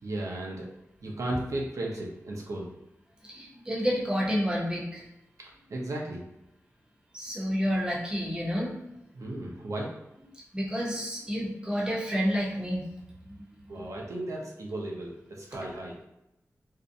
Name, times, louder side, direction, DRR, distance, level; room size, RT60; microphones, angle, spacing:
voice 1, 0.0-0.7 1.0-2.7 5.4-6.2 9.1-9.9 13.7-16.0, right 1 dB, 70° right, -2 dB, 0.5 m, -35 dB
voice 2, 3.3-5.0 7.1-8.7 10.5-12.8 13.3-13.4 13.8-13.9, equal, 15° right, -4 dB, 0.6 m, -29 dB
2.5 x 2.0 x 2.6 m, 0.89 s
wide cardioid pair, 95°, 6 cm